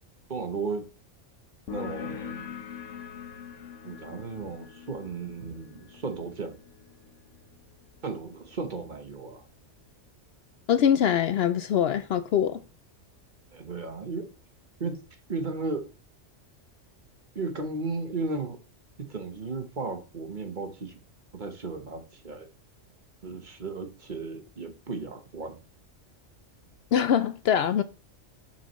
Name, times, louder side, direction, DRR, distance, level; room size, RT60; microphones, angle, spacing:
voice 1, 0.3-0.9 1.7-2.5 3.8-6.6 8.0-9.5 13.5-14.3 14.8-15.0 15.3-15.9 17.3-18.6 19.0-21.0 21.3-22.5 23.2-25.6, right 3 dB, 40° right, 1.1 m, -35 dB
sound 1, 1.7-8.9, left 8 dB, 85° left, 1.2 m, -43 dB
voice 2, 10.7-12.6 26.9-27.8, left 9 dB, 65° left, 0.7 m, -23 dB
7.2 x 6.1 x 3.0 m
omnidirectional pair, 1.3 m